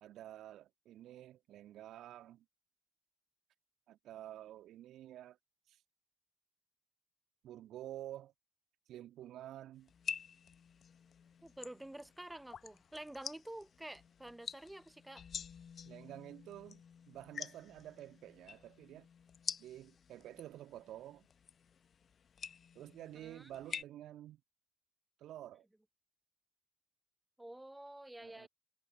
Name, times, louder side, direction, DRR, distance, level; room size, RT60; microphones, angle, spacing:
voice 1, 0.0-2.5 3.9-5.4 5.7-5.8 7.4-8.3 8.9-9.9 15.8-19.1 19.6-21.3 22.7-24.4 25.2-25.6 28.2-28.5, right 13 dB, 60° right, 1.8 m, -50 dB
sound 1, 9.9-23.8, left 7 dB, 45° left, 0.9 m, -48 dB
voice 2, 11.4-15.2 23.2-23.5 27.4-28.5, right 1 dB, 10° right, 0.8 m, -49 dB
figure-of-eight pair, 50°, 0 cm